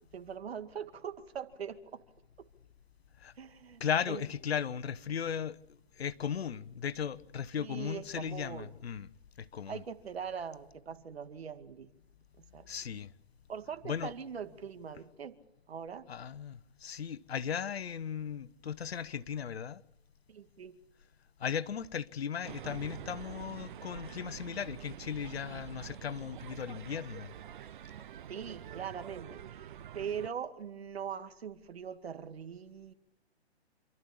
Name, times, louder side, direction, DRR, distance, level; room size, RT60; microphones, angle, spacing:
voice 1, 0.1-2.0 3.4-3.8 4.1-4.2 7.6-8.7 9.7-11.9 12.5-12.7 13.5-15.4 15.7-16.1 20.3-20.8 28.3-32.9, right 7 dB, 65° right, 2.2 m, -42 dB
voice 2, 3.8-5.6 6.0-9.1 9.4-9.8 12.7-13.1 13.8-14.1 16.1-19.8 21.4-27.3, left 8 dB, 65° left, 1.2 m, -36 dB
sound 1, 22.4-30.3, right 10 dB, 50° right, 0.8 m, -46 dB
27.5 x 13.5 x 8.6 m
hypercardioid pair, 140°, 33 cm